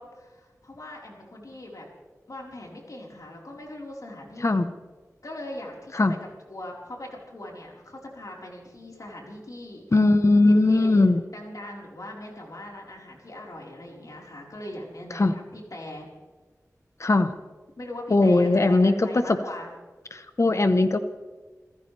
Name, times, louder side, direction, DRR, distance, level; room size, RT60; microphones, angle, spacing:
voice 1, 0.0-1.9 2.3-4.6 5.2-5.9 6.5-9.8 10.5-16.1 17.8-19.7, left 1 dB, 75° left, -2 dB, 4.4 m, -40 dB
voice 2, 9.9-11.2 15.1-15.3 17.0-17.3 18.1-19.4 20.1-21.0, left 2 dB, 55° left, 9 dB, 1.0 m, -19 dB
28.0 x 15.0 x 3.4 m, 1.3 s
wide cardioid pair, 70°, 6 cm